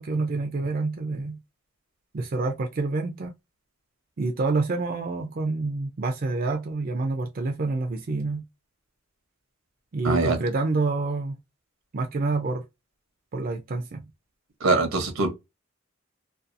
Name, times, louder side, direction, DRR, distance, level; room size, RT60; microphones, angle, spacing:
voice 1, 0.0-1.4 2.1-3.3 4.2-8.4 9.9-11.4 11.9-12.6 13.3-14.0, right 3 dB, 45° right, 0.4 m, -27 dB
voice 2, 10.0-10.4 14.6-15.3, right 3 dB, 80° right, 0.8 m, -22 dB
2.6 x 2.3 x 2.5 m
head